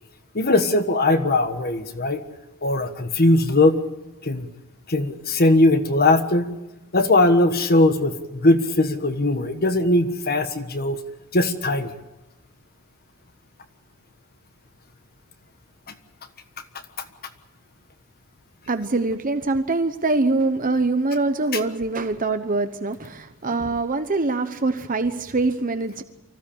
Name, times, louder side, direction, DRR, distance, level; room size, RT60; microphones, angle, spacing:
voice 1, 0.3-2.2 2.6-3.8 4.2-4.5 4.9-6.5 6.9-11.0 11.3-11.9, left 2 dB, 45° left, 8 dB, 1.4 m, -19 dB
voice 2, 18.7-26.0, right 3 dB, 40° right, 9 dB, 1.0 m, -24 dB
25.0 x 16.0 x 8.6 m, 1.0 s
head